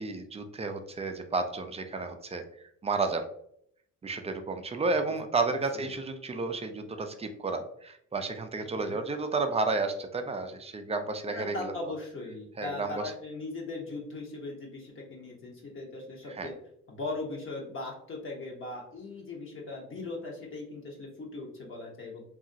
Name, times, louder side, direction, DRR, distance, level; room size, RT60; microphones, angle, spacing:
voice 1, 0.0-2.4 2.8-3.2 4.0-11.7 12.6-13.0 16.4-16.5, right 3 dB, 20° right, 6 dB, 0.4 m, -31 dB
voice 2, 11.3-16.5 16.9-22.2, left 2 dB, 45° left, -2 dB, 0.8 m, -39 dB
2.8 x 2.4 x 2.6 m, 0.69 s
cardioid pair, 90°, 30 cm